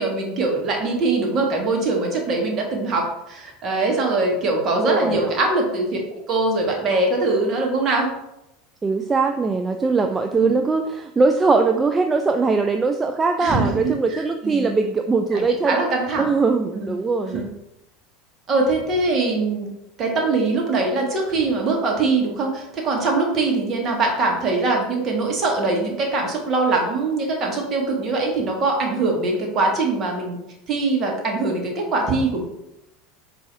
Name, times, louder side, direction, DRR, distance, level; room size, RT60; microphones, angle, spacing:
voice 1, 0.0-8.1 10.3-10.6 13.4-14.7 15.3-16.3 16.7-16.9 17.3-17.4 18.5-19.7 20.0-30.4 30.7-32.4, right 3 dB, 40° right, 1 dB, 1.3 m, -22 dB
voice 2, 4.8-5.3 8.8-15.8 16.2-17.5, right 4 dB, 20° right, 5 dB, 0.3 m, -21 dB
4.6 x 2.7 x 3.2 m, 0.88 s
hypercardioid pair, 80°, 0 cm